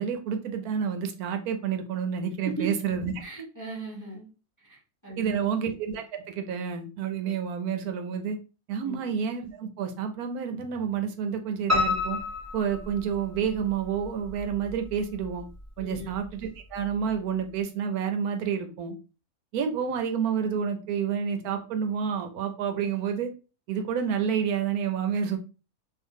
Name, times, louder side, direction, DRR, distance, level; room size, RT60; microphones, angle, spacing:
voice 1, 0.0-3.1 5.2-8.4 8.7-12.2 12.5-15.4 15.8-19.0 19.5-23.3 23.7-25.4, right 7 dB, 90° right, 7 dB, 1.1 m, -29 dB
voice 2, 3.2-4.3 4.6-5.4 8.8-9.1 15.8-16.1, right 3 dB, 15° left, -4 dB, 0.7 m, -37 dB
Piano, 11.7-13.6 14.0-14.9 15.2-15.3 15.8-15.9 16.1-16.2, left 4 dB, 15° right, 0.8 m, -29 dB
2.7 x 2.5 x 3.6 m, 0.33 s
omnidirectional pair, 1.6 m